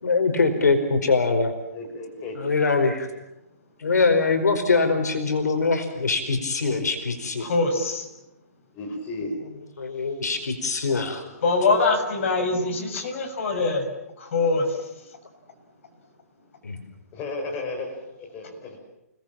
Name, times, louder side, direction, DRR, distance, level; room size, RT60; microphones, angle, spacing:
voice 1, 0.0-1.5 2.4-3.1 3.8-7.5 9.8-11.2 14.4-14.5 16.6-16.8, left 4 dB, 85° left, 6 dB, 4.8 m, -23 dB
voice 2, 1.7-2.5 8.7-9.4 17.1-18.8, left 2 dB, 20° left, 2 dB, 6.1 m, -33 dB
voice 3, 7.4-8.1 11.4-13.9 14.2-14.7, left 3 dB, 50° left, 4 dB, 6.7 m, -23 dB
29.5 x 19.5 x 7.5 m, 0.89 s
hypercardioid pair, 155°, 9 cm